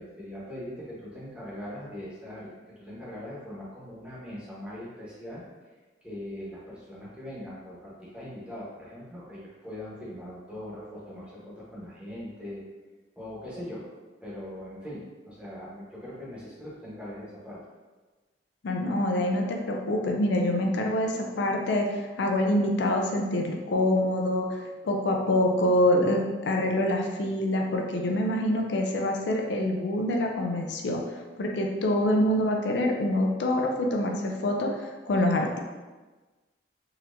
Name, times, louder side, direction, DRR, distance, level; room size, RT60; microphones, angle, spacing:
voice 1, 0.0-5.5 6.0-12.6 13.2-13.8 14.2-17.6, left 1 dB, 5° right, -8 dB, 0.9 m, -41 dB
voice 2, 18.6-35.6, left 1 dB, 75° left, 2 dB, 0.4 m, -26 dB
4.0 x 2.8 x 2.5 m, 1.3 s
head